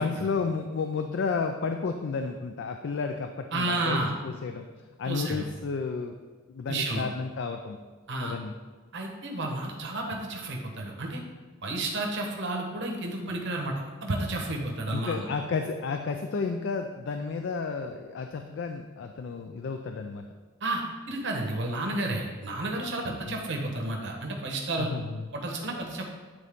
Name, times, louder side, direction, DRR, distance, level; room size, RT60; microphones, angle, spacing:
voice 1, 0.0-4.7 5.0-6.1 6.5-7.8 8.2-8.5 14.9-20.2 23.2-23.4 24.8-25.2, left 4 dB, 55° left, 6 dB, 0.3 m, -32 dB
voice 2, 3.5-4.1 5.0-5.4 6.7-7.1 8.1-8.4 8.9-11.2 11.6-15.3 20.6-20.8 21.1-24.9 25.3-26.0, right 2 dB, 55° right, 1 dB, 1.0 m, -31 dB
8.9 x 3.9 x 3.5 m, 1.4 s
head